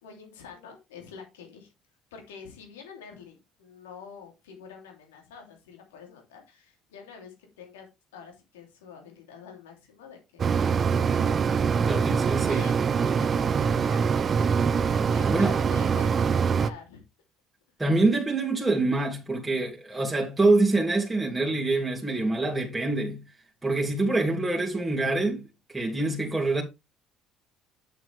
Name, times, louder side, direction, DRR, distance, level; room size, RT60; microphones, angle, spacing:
voice 1, 0.0-1.7 2.1-11.8 12.1-17.0, left 6 dB, 85° left, 3.0 m, -47 dB
Mechanisms, 10.4-16.7, right 6 dB, 40° right, 0.7 m, -24 dB
voice 2, 11.8-12.7 15.3-15.6 17.8-23.2 23.6-26.6, right 2 dB, 10° right, 2.7 m, -25 dB
8.3 x 7.4 x 3.4 m
hypercardioid pair, 60°, 0 cm